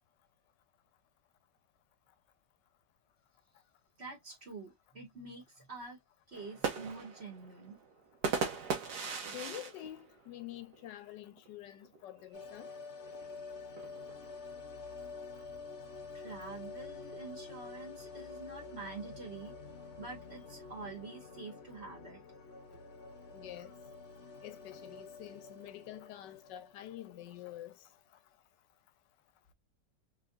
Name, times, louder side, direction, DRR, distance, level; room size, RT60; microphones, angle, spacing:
voice 1, 4.0-6.0 6.3-7.8 16.1-19.5 20.0-22.2 22.7-22.8, right 4 dB, 40° right, 1.5 m, -47 dB
sound 1, 6.3-11.0 11.4-11.5 11.8-12.2 13.1-14.6, right 5 dB, 65° right, 1.4 m, -38 dB
voice 2, 9.3-12.7 23.3-23.8 24.4-27.8, left 13 dB, 75° left, 1.2 m, -47 dB
sound 2, 12.3-27.2 27.5-27.6, left 4 dB, 55° left, 0.8 m, -48 dB
3.4 x 3.1 x 2.4 m
omnidirectional pair, 1.9 m